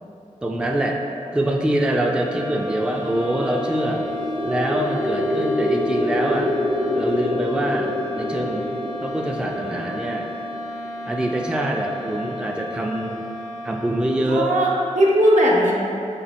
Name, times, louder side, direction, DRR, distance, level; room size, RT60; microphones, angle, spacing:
voice 1, 0.4-1.0 1.3-4.0 4.4-6.5 6.9-10.3 11.1-13.2 13.6-14.6, right 1 dB, 5° right, 1 dB, 0.3 m, -24 dB
sound 1, 1.9-14.6, equal, 90° left, 0.6 m, -34 dB
sound 2, 2.9-11.0, left 1 dB, 70° left, 0.9 m, -27 dB
voice 2, 14.2-15.7, equal, 70° right, -3 dB, 0.7 m, -18 dB
3.5 x 3.0 x 4.1 m, 2.7 s
cardioid pair, 50°, 13 cm